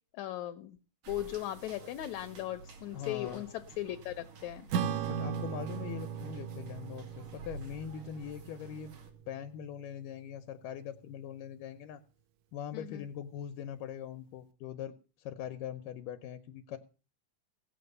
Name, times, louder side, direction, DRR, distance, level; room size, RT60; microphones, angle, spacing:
voice 1, 0.1-0.8 1.1-4.7 12.7-13.0, left 14 dB, 70° left, 10 dB, 1.9 m, -38 dB
sound 1, 1.0-9.1, right 4 dB, 85° right, 4.1 m, -51 dB
voice 2, 2.9-3.5 5.1-8.9 9.3-12.0 12.5-16.8, left 9 dB, 90° left, 10 dB, 2.5 m, -42 dB
Acoustic guitar / Strum, 4.7-9.4, right 8 dB, 70° right, 2.1 m, -37 dB
17.5 x 7.9 x 6.7 m, 0.37 s
omnidirectional pair, 3.7 m